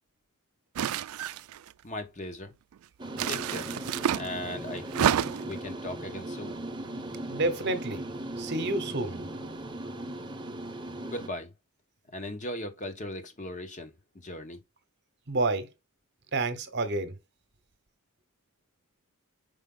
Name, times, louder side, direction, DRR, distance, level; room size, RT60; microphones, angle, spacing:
sound 1, 0.8-1.7 3.1-4.3 4.9-5.6, right 9 dB, 80° right, 0.4 m, -28 dB
voice 1, 1.8-2.5 3.3-3.7 4.1-6.6 11.0-11.5 12.1-14.6, left 1 dB, 35° left, 1.2 m, -38 dB
sound 2, 3.0-11.3, right 1 dB, 20° right, 1.0 m, -38 dB
voice 2, 7.3-8.1 8.4-9.3 15.3-15.7 16.3-17.1, right 2 dB, 50° right, 1.0 m, -29 dB
5.4 x 4.8 x 3.8 m
head